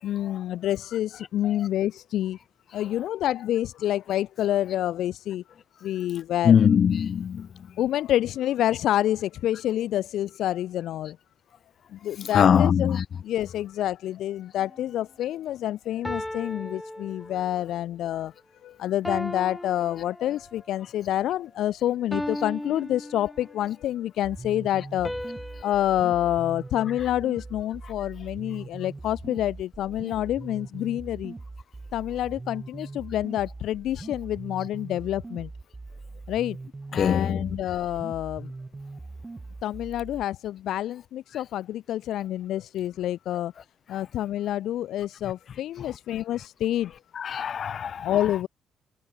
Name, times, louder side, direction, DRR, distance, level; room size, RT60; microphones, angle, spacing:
voice 1, 0.0-2.4 2.7-5.4 5.8-6.6 7.8-11.2 11.9-18.3 18.6-25.1 25.6-31.3 31.9-35.5 36.3-36.6 36.9-38.5 39.6-43.5 43.9-46.9 48.0-48.5, left 12 dB, 80° left, 1.2 m, -28 dB
voice 2, 6.4-7.5 12.3-13.0 37.0-37.6 47.1-48.4, left 8 dB, 55° left, 2.1 m, -22 dB
sound 1, 14.6-14.9 16.0-17.7 19.0-20.7 22.1-23.7 25.0-27.5, left 1 dB, 5° left, 4.9 m, -37 dB
sound 2, 24.2-40.2, right 3 dB, 20° right, 6.3 m, -41 dB
cardioid pair, 90°, 0 cm